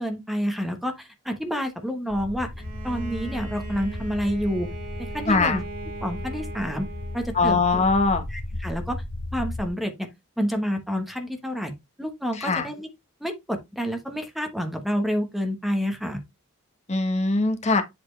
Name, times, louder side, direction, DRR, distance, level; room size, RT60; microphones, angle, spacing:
voice 1, 0.0-2.5 2.8-4.7 5.0-5.6 6.0-6.9 7.1-7.6 8.3-9.0 9.3-10.1 10.4-11.7 12.0-12.9 13.2-16.2, equal, ahead, 1.1 m, -28 dB
sound 1, 2.1-9.7, left 1 dB, 70° left, 1.3 m, -35 dB
Bowed string instrument, 2.6-7.7, right 3 dB, 40° right, 2.1 m, -40 dB
voice 2, 5.3-5.6 7.3-8.2 12.4-12.7 16.9-17.8, left 3 dB, 30° left, 1.1 m, -21 dB
7.9 x 4.2 x 3.2 m
head